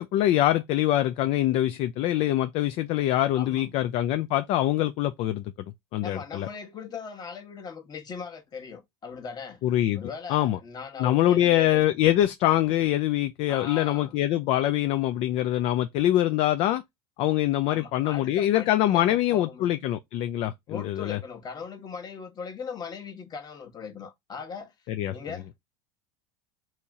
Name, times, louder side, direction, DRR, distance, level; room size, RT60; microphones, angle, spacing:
voice 1, 0.0-5.5 5.9-6.5 9.6-10.6 11.0-16.8 17.2-21.2 24.9-25.2, left 13 dB, 50° left, 0.4 m, -24 dB
voice 2, 3.3-3.8 6.0-9.6 10.0-11.8 13.5-14.1 17.7-19.7 20.7-24.7 25.1-25.7, left 6 dB, 30° left, 1.1 m, -39 dB
2.9 x 2.8 x 3.6 m
hypercardioid pair, 100°, 13 cm